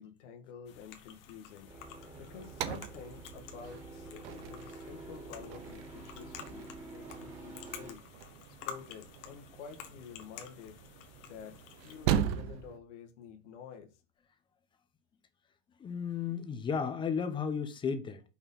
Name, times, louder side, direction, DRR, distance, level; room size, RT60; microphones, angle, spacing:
voice 1, 0.0-1.7 2.2-8.0 8.6-10.8 11.2-13.9, left 7 dB, 85° left, 1.6 m, -49 dB
sound 1, 0.6-12.1, left 8 dB, 55° left, 1.5 m, -51 dB
sound 2, 1.7-7.9, right 2 dB, 20° right, 2.0 m, -49 dB
sound 3, 2.1-12.8, right 9 dB, 60° right, 0.9 m, -39 dB
voice 2, 15.8-18.2, left 6 dB, 15° left, 0.7 m, -34 dB
5.8 x 4.4 x 5.4 m
supercardioid pair, 160°, 34 cm